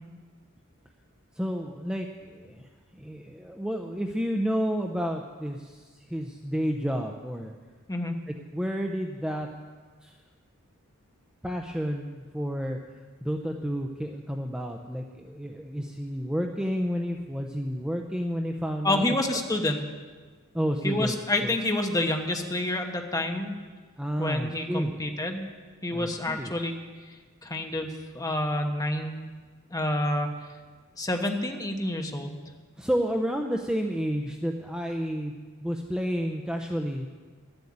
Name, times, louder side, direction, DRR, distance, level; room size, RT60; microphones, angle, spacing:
voice 1, 1.3-7.5 8.5-9.5 10.0-10.2 11.4-12.8 13.2-19.0 20.5-21.1 21.4-21.5 24.0-24.9 25.9-26.5 32.8-35.3 35.6-37.1, equal, 5° right, 3 dB, 0.6 m, -30 dB
voice 2, 18.8-19.8 20.8-23.5 24.2-25.5 25.8-26.8 27.4-27.9 28.1-29.2 29.7-30.3 31.0-32.4, left 1 dB, 15° left, 4 dB, 1.1 m, -28 dB
12.0 x 7.9 x 8.6 m, 1.4 s
head